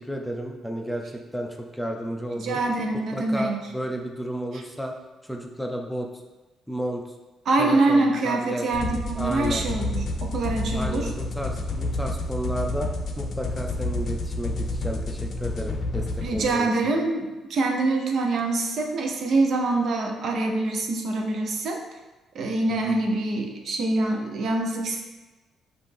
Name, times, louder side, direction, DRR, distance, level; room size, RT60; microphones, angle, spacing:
voice 1, 0.0-2.6 3.1-5.0 5.2-6.1 6.7-7.0 7.6-8.7 9.2-9.6 10.7-12.9 13.2-16.7 22.9-23.0, equal, ahead, 2 dB, 0.4 m, -32 dB
voice 2, 2.4-3.6 7.5-11.1 16.2-21.8 22.3-25.0, right 2 dB, 60° right, 2 dB, 0.6 m, -25 dB
sound 1, 8.7-16.5, left 2 dB, 60° left, 0.5 m, -29 dB
5.4 x 2.5 x 3.3 m, 1.2 s
cardioid pair, 90°, 0 cm